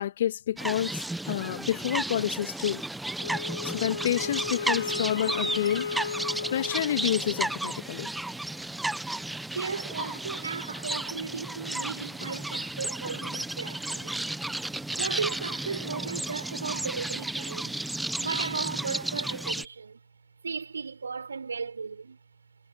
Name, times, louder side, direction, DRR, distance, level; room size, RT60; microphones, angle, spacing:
voice 1, 0.0-2.8 3.6-5.9 6.5-8.1, left 11 dB, 45° left, 2.5 m, -29 dB
sound 1, 0.6-19.7, right 2 dB, 5° right, 1.0 m, -33 dB
Wind instrument woodwind instrument, 3.2-7.6, left 6 dB, 65° left, 2.2 m, -35 dB
voice 2, 9.5-14.2 14.9-17.8 18.2-20.0 20.4-22.2, right 5 dB, 70° right, 4.8 m, -35 dB
figure-of-eight pair, 130°, 0 cm